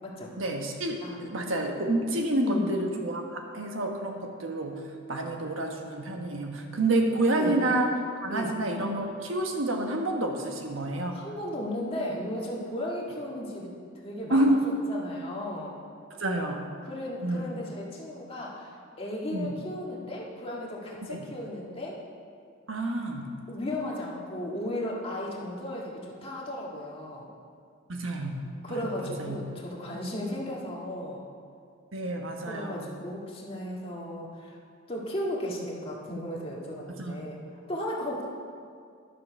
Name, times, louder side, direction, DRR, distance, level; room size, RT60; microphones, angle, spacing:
voice 1, 0.4-4.8 5.1-7.9 8.2-11.2 14.3-14.6 16.1-16.6 17.2-17.5 19.3-19.5 21.1-21.2 22.7-23.3 27.9-28.4 29.0-29.4 30.2-30.3 31.9-32.8 37.0-37.2, right 1 dB, 80° right, 2 dB, 1.3 m, -28 dB
voice 2, 2.4-2.7 7.4-7.6 8.3-8.6 11.1-13.8 14.0-15.8 16.8-18.7 19.0-22.0 23.5-27.3 28.6-31.2 32.4-34.6 34.9-37.4 37.7-38.2, left 1 dB, 30° left, -3 dB, 1.8 m, -35 dB
11.0 x 7.5 x 5.8 m, 2.2 s
head